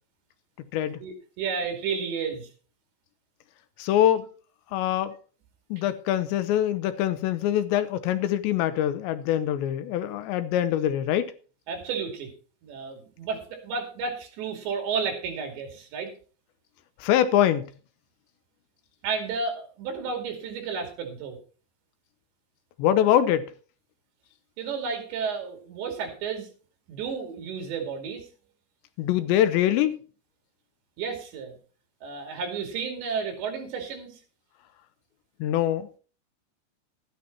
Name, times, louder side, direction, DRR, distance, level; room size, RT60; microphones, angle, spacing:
voice 1, 1.0-2.5 11.7-12.3 12.6-16.1 19.0-21.4 24.6-26.5 26.9-28.3 31.0-31.6 32.0-34.2, right 5 dB, 70° right, 4.7 m, -32 dB
voice 2, 3.8-4.3 4.7-5.2 5.7-11.3 17.0-17.7 22.8-23.5 29.0-30.0 35.4-35.9, left 11 dB, 80° left, 2.9 m, -24 dB
13.0 x 10.0 x 4.4 m
omnidirectional pair, 5.4 m